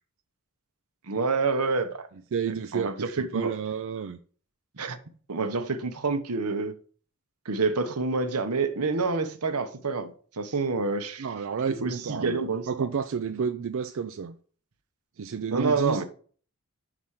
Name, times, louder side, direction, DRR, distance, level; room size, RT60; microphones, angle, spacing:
voice 1, 1.1-2.1 2.7-3.5 4.8-5.0 5.3-6.7 7.4-11.3 11.8-12.9 15.5-16.0, right 4 dB, 85° right, 1.0 m, -28 dB
voice 2, 2.3-4.2 11.2-12.4 12.7-14.4 15.2-16.0, right 6 dB, 60° right, 0.4 m, -31 dB
5.9 x 4.9 x 5.6 m
head